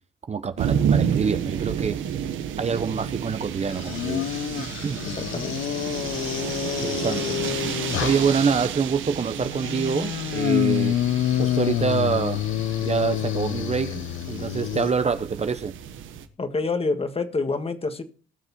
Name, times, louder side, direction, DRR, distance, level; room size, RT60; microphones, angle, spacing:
voice 1, 0.3-2.0 2.6-4.3 4.6-5.0 6.8-7.4 8.0-11.0 11.4-12.4 12.8-14.0 14.3-15.7, right 5 dB, 35° right, 0.9 m, -26 dB
sound 1, 0.6-16.3, right 8 dB, 80° right, 1.3 m, -31 dB
sound 2, 3.7-8.5 9.4-14.9, left 12 dB, 80° left, 0.7 m, -27 dB
voice 2, 5.1-5.6 16.4-18.0, left 3 dB, 30° left, 1.7 m, -27 dB
19.0 x 6.5 x 4.4 m
cardioid pair, 90°, 20 cm